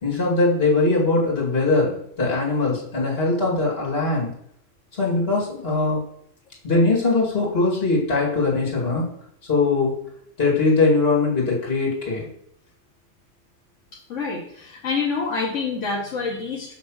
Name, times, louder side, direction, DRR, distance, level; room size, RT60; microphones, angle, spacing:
voice 1, 0.0-4.3 4.9-6.0 6.6-9.1 9.5-9.9 10.4-12.3, left 3 dB, 55° left, -3 dB, 2.4 m, -21 dB
voice 2, 14.1-16.7, left 4 dB, 80° left, -2 dB, 1.4 m, -27 dB
6.9 x 3.2 x 6.1 m, 0.70 s
omnidirectional pair, 1.2 m